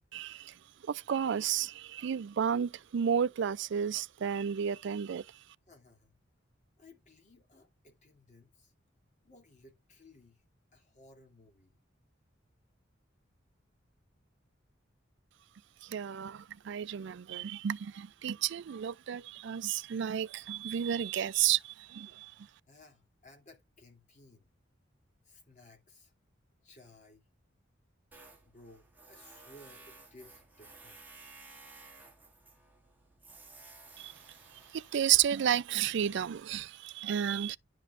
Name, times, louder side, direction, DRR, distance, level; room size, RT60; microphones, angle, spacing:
voice 1, 0.1-0.5 0.9-5.2 15.9-22.3 34.0-34.1 34.7-37.6, right 9 dB, 65° right, 0.4 m, -32 dB
voice 2, 5.7-6.1 6.8-8.7 9.2-10.4 10.7-11.8 22.7-24.5 25.2-26.1 26.6-27.2 28.5-31.0, left 2 dB, 40° left, 2.8 m, -58 dB
Tools, 28.1-36.4, right 3 dB, 10° right, 2.1 m, -55 dB
11.0 x 5.3 x 2.5 m
head